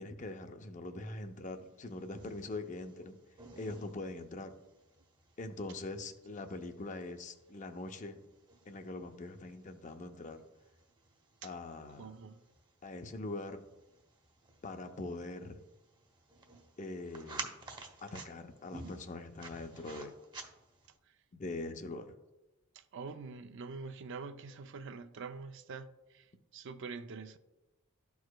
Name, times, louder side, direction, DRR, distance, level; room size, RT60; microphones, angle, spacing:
voice 1, 0.0-3.2 3.6-4.5 5.4-8.2 8.7-10.4 11.4-12.1 12.8-13.6 14.6-15.6 16.8-17.5 18.0-20.1 21.3-22.1, left 2 dB, 35° left, 0.5 m, -42 dB
sound 1, 1.5-21.0, right 3 dB, 20° right, 0.7 m, -52 dB
voice 2, 12.0-12.4 22.8-25.9 26.1-26.3 26.5-27.4, right 4 dB, 55° right, 0.4 m, -45 dB
13.0 x 4.7 x 2.2 m
head